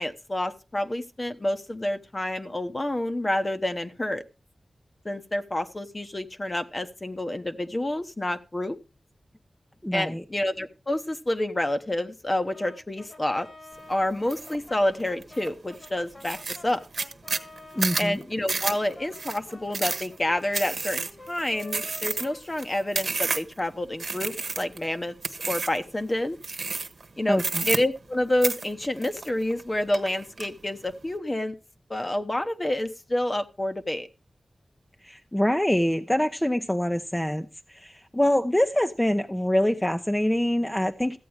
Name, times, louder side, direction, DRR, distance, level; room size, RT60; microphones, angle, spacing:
voice 1, 0.0-4.2 5.0-8.8 9.9-13.5 13.9-16.4 16.6-16.8 18.0-25.1 25.5-26.4 27.2-31.6 31.9-34.1, left 1 dB, 30° left, 1.0 m, -28 dB
voice 2, 9.8-10.2 17.7-18.2 27.3-27.8 35.0-41.2, left 1 dB, 10° left, 0.7 m, -25 dB
Brass instrument, 12.5-18.1 18.7-23.4, left 2 dB, 65° left, 3.1 m, -48 dB
sound 1, 14.3-14.6 15.0-15.5 15.9-16.0 16.2-23.6 24.0-24.8 25.2-25.8 26.4-27.0 27.3-28.2 28.4-29.6 29.9-30.5, right 4 dB, 70° right, 1.1 m, -30 dB
14.5 x 8.5 x 4.7 m
wide cardioid pair, 60°, 0 cm